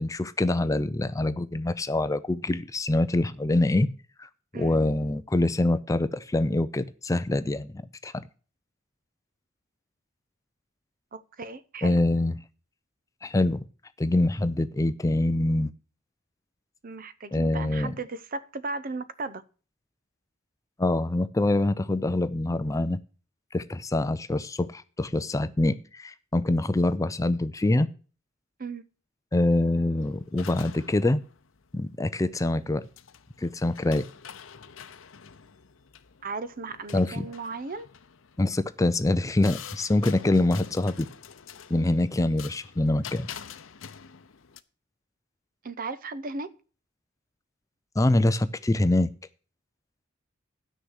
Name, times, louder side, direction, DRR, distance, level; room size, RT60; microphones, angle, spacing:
voice 1, 0.0-3.9 4.2-4.3 4.5-8.2 11.8-12.3 13.2-13.6 14.0-15.7 17.3-17.9 20.8-23.0 23.5-27.9 29.3-31.2 31.7-32.9 33.4-34.1 36.9-37.3 38.4-41.1 41.7-43.3 48.0-49.1, left 2 dB, 15° left, 0.4 m, -25 dB
voice 2, 11.1-12.0 16.8-19.4 28.6-28.8 36.2-37.9 45.6-46.5, right 3 dB, 45° right, 0.7 m, -36 dB
sound 1, 30.0-44.6, left 8 dB, 75° left, 0.7 m, -46 dB
11.5 x 6.5 x 6.3 m
head